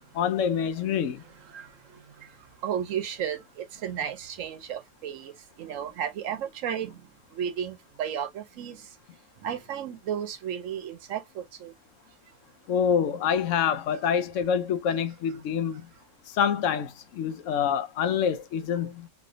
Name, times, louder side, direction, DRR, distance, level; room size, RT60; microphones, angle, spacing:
voice 1, 0.1-1.2 12.7-15.9 16.3-19.1, left 7 dB, 80° left, 0.9 m, -26 dB
voice 2, 0.9-2.3 2.6-8.9 9.4-11.7, right 9 dB, 85° right, 1.1 m, -34 dB
3.2 x 2.7 x 2.6 m
omnidirectional pair, 1.3 m